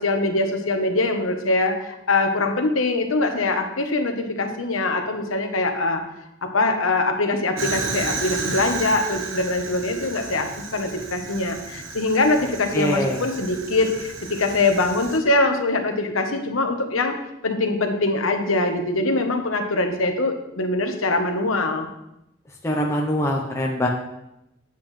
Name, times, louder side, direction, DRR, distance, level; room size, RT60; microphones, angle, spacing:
voice 1, 0.0-6.0 6.4-17.1 17.4-21.9, left 2 dB, 90° left, 5 dB, 1.1 m, -23 dB
Fire, 7.6-15.2, right 4 dB, 80° right, 1.2 m, -33 dB
voice 2, 12.7-13.2 22.6-23.9, equal, 15° left, -1 dB, 0.8 m, -23 dB
8.6 x 8.1 x 3.3 m, 0.87 s
head